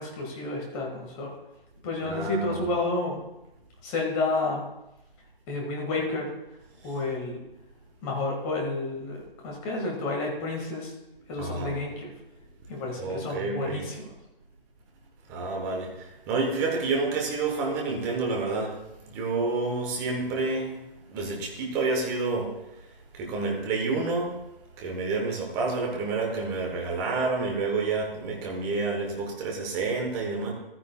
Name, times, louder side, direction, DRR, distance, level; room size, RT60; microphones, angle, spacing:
voice 1, 0.0-1.3 1.8-3.2 3.8-4.7 5.5-6.3 6.8-7.4 8.0-10.9 11.3-12.1 12.7-14.1, left 2 dB, 10° left, -1 dB, 1.8 m, -30 dB
voice 2, 2.0-2.6 11.4-11.7 13.0-13.8 15.3-18.8 19.1-20.8 21.1-22.5 23.1-24.3 24.8-30.5, right 3 dB, 10° right, 0 dB, 1.1 m, -29 dB
14.5 x 14.0 x 2.3 m, 0.90 s
figure-of-eight pair, 155°, 30 cm